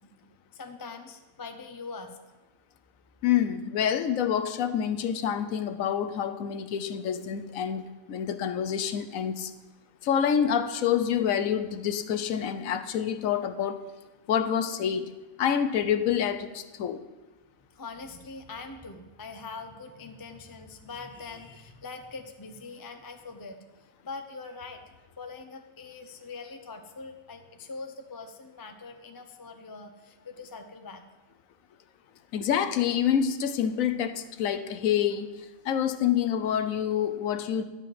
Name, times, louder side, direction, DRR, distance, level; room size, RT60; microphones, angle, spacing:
voice 1, 0.0-2.2 17.7-24.8 25.2-31.0, left 4 dB, 30° left, 6 dB, 0.4 m, -43 dB
voice 2, 3.2-9.5 10.0-13.9 14.3-15.1 15.4-17.0 32.3-37.6, left 9 dB, 80° left, 10 dB, 1.1 m, -27 dB
11.0 x 4.9 x 7.5 m, 1.1 s
omnidirectional pair, 1.4 m